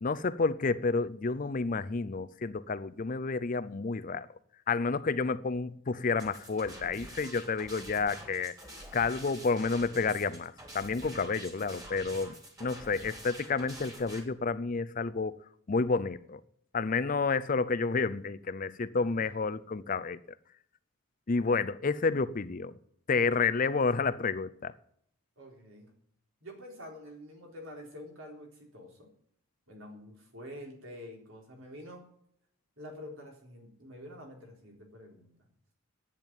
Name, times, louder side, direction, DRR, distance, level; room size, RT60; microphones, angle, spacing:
voice 1, 0.0-4.3 4.7-8.5 8.9-12.3 12.6-15.4 15.7-16.4 16.7-20.2 21.3-22.8 23.1-24.7, left 4 dB, 40° left, 0.5 m, -30 dB
sound 1, 6.2-14.2, right 1 dB, 15° right, 3.1 m, -47 dB
voice 2, 18.9-19.3 25.4-25.9 26.4-29.1 29.7-32.0 32.8-35.3, left 1 dB, 65° right, 4.0 m, -47 dB
10.5 x 8.9 x 9.0 m
head